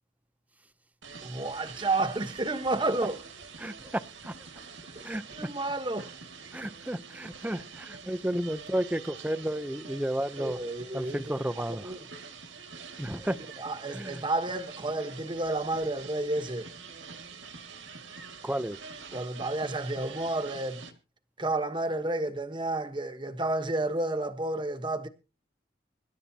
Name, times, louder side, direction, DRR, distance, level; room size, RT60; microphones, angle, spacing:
sound 1, 1.0-20.9, right 5 dB, 80° right, 2.1 m, -46 dB
voice 1, 1.2-3.2 4.9-5.1 5.4-6.1 10.4-11.2 11.8-12.0 13.6-16.7 19.1-20.8 21.4-25.1, right 2 dB, 25° right, 1.1 m, -31 dB
voice 2, 3.6-4.3 5.0-5.3 6.5-10.6 10.9-11.9 13.0-13.5 13.9-14.3 18.4-18.8, right 1 dB, 10° right, 0.6 m, -32 dB
24.5 x 11.5 x 2.8 m
head